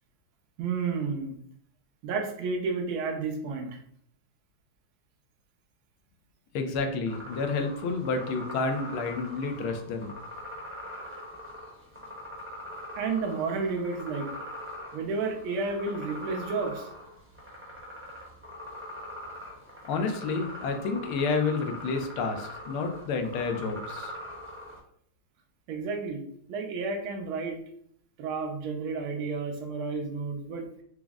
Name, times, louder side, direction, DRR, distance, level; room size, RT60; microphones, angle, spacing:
voice 1, 0.6-1.3 2.0-3.8 13.0-14.3 14.9-16.9 25.7-26.2 26.5-27.6 28.2-30.7, right 4 dB, 80° right, 3 dB, 1.5 m, -31 dB
voice 2, 6.5-10.2 19.8-24.1, left 4 dB, 85° left, 5 dB, 1.5 m, -30 dB
sound 1, 7.1-24.8, left 1 dB, 10° right, 0.6 m, -42 dB
4.8 x 2.0 x 3.5 m, 0.65 s
omnidirectional pair, 2.3 m